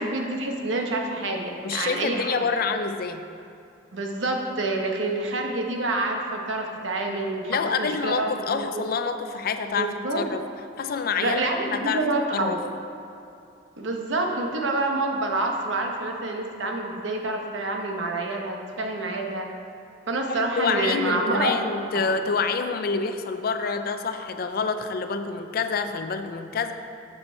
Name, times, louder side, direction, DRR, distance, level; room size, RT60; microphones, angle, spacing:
voice 1, 0.0-2.4 3.9-8.8 9.8-10.3 11.2-12.6 13.8-19.5 20.1-21.6 21.9-22.1, right 2 dB, 80° right, 2 dB, 1.0 m, -27 dB
voice 2, 1.6-3.2 7.5-10.4 10.8-11.4 11.7-12.0 12.3-12.6 20.3-26.7, left 5 dB, 50° left, 8 dB, 0.4 m, -27 dB
6.9 x 6.8 x 4.4 m, 2.6 s
head